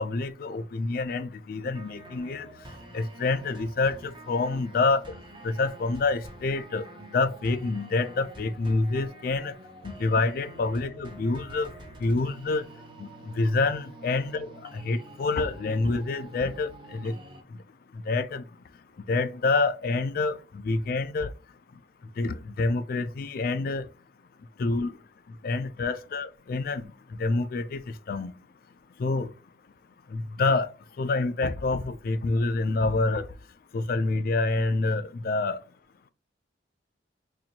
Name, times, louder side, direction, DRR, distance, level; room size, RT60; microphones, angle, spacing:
voice 1, 0.0-2.5 2.9-5.0 5.4-6.8 7.1-9.5 9.8-11.7 12.0-12.6 13.0-13.1 13.4-14.5 14.7-17.2 18.1-18.4 19.1-20.4 20.6-21.3 22.2-23.8 24.6-24.9 25.4-26.9 27.2-27.8 28.1-28.3 29.0-29.3 30.1-30.7 31.0-33.2 33.7-35.6, left 3 dB, 50° left, 0.3 m, -27 dB
sound 1, 1.7-17.4, right 1 dB, 25° right, 0.6 m, -47 dB
4.3 x 2.6 x 2.8 m
head